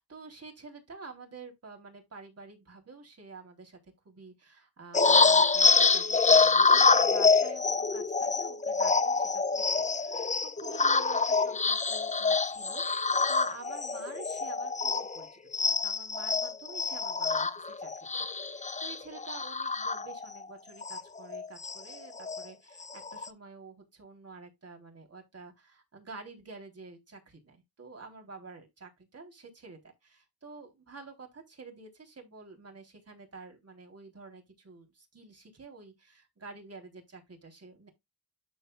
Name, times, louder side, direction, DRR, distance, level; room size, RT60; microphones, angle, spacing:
voice 1, 0.0-3.8 4.1-37.9, right 4 dB, 40° right, 3.7 m, -49 dB
sound 1, 4.9-15.2 15.5-20.4 20.8-21.0 21.3-22.4 22.8-23.3, left 4 dB, 20° left, 0.6 m, -26 dB
12.5 x 4.5 x 2.4 m
cardioid pair, 90°, 39 cm